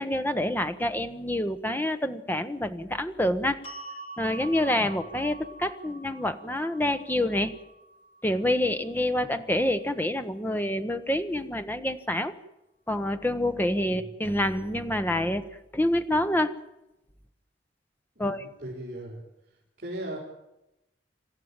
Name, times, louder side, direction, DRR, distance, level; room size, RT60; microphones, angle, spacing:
voice 1, 0.0-3.6 4.2-7.6 8.2-12.3 12.9-16.6 18.2-18.5, left 1 dB, 10° left, 9 dB, 1.2 m, -27 dB
sound 1, 3.6-9.8, right 2 dB, 30° left, 2.8 m, -46 dB
voice 2, 18.2-19.2 19.8-20.2, right 1 dB, 45° right, -5 dB, 5.8 m, -38 dB
27.0 x 14.0 x 9.0 m, 0.91 s
head